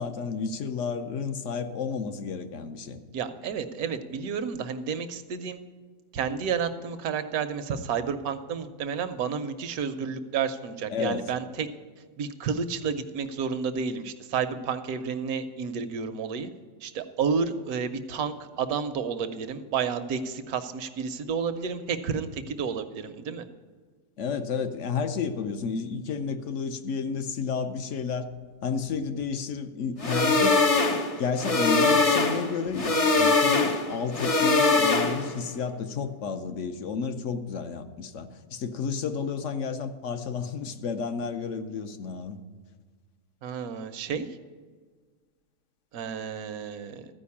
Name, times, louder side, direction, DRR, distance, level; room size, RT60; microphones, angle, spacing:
voice 1, 0.0-3.0 10.9-11.3 24.2-28.3 28.6-30.6 31.2-42.4, left 5 dB, 60° left, 8 dB, 1.0 m, -31 dB
voice 2, 3.1-5.6 6.1-11.7 12.2-16.5 16.8-23.5 43.4-44.3 45.9-47.1, right 6 dB, 75° right, 10 dB, 1.2 m, -31 dB
sound 1, 30.0-35.4, left 3 dB, 40° left, 0.5 m, -22 dB
14.0 x 5.1 x 8.4 m, 1.5 s
omnidirectional pair, 1.6 m